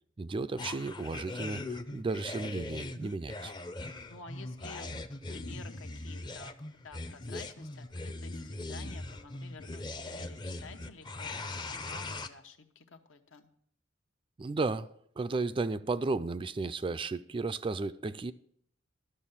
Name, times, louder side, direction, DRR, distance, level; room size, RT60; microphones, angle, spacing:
voice 1, 0.2-3.5 14.4-14.9 15.2-18.3, right 3 dB, 25° right, 0.4 m, -34 dB
sound 1, 0.6-12.3, left 2 dB, 25° left, 0.6 m, -40 dB
voice 2, 3.9-6.5 6.8-13.5, left 3 dB, 75° left, 1.0 m, -51 dB
12.5 x 6.7 x 5.6 m
head